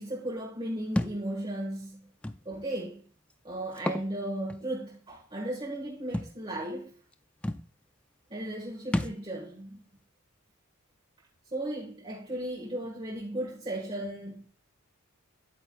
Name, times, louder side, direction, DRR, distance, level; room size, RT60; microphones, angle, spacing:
voice 1, 0.0-2.1 2.4-3.0 3.4-6.9 8.3-9.8 11.5-14.5, right 1 dB, 25° right, 1.3 m, -36 dB
Thump thud, 1.0-1.2 2.2-2.4 3.7-4.1 4.5-4.6 6.1-6.3 7.1-7.2 7.4-7.7 8.9-9.2, left 1 dB, 5° left, 0.3 m, -30 dB
9.1 x 8.7 x 2.2 m
head